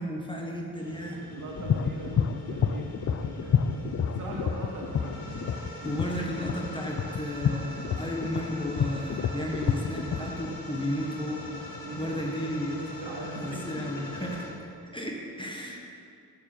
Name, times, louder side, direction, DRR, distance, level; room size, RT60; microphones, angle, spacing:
voice 1, 0.0-1.2 5.8-11.5 12.0-12.8 13.4-14.4 14.9-15.8, equal, 10° left, 0 dB, 1.5 m, -33 dB
sound 1, 0.8-14.5, left 1 dB, 60° left, 2.5 m, -42 dB
voice 2, 1.3-5.4 5.8-5.9 11.8-12.2 12.7-13.6 14.0-14.1, right 2 dB, 50° right, -2 dB, 2.3 m, -41 dB
sound 2, 1.6-10.5, left 7 dB, 40° left, 0.5 m, -29 dB
7.5 x 6.6 x 6.7 m, 2.3 s
supercardioid pair, 55°, 39 cm